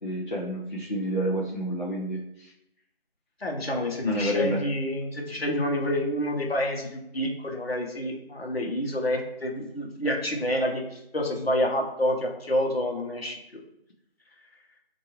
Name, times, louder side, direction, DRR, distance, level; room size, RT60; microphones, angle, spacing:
voice 1, 0.0-2.5 4.0-4.6, equal, 50° left, -3 dB, 0.5 m, -29 dB
voice 2, 3.4-13.4, left 1 dB, 70° left, 1 dB, 1.0 m, -28 dB
4.3 x 2.6 x 3.0 m, 0.81 s
figure-of-eight pair, 180°, 31 cm